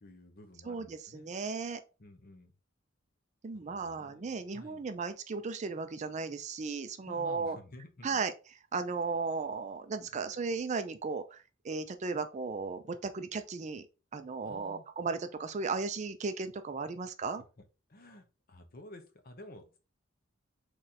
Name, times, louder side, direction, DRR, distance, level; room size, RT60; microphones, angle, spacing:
voice 1, 0.0-1.3 2.0-2.5 3.5-4.8 7.1-8.2 10.1-10.3 14.4-14.9 17.2-19.8, left 1 dB, 50° left, 0.9 m, -53 dB
voice 2, 0.6-1.8 3.4-7.6 8.0-8.3 8.7-13.9 14.1-17.4, right 4 dB, 35° right, 0.4 m, -35 dB
4.2 x 3.2 x 3.7 m
head